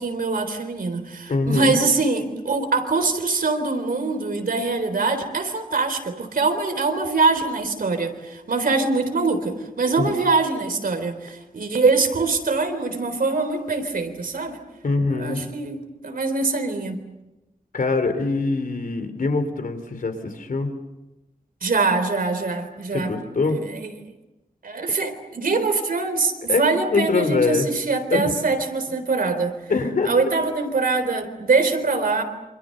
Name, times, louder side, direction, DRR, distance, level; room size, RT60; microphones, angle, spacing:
voice 1, 0.0-14.6 15.1-17.0 21.6-23.1 23.4-23.9 24.6-29.6 30.1-32.2, right 3 dB, 80° right, 7 dB, 3.9 m, -23 dB
voice 2, 1.3-1.8 10.0-10.1 14.8-15.5 17.7-20.7 22.9-23.6 26.5-26.6 26.9-27.7 28.1-28.3 29.7-30.1, left 3 dB, 70° left, 8 dB, 3.9 m, -23 dB
27.5 x 27.0 x 6.7 m, 1.0 s
wide cardioid pair, 105°, 15 cm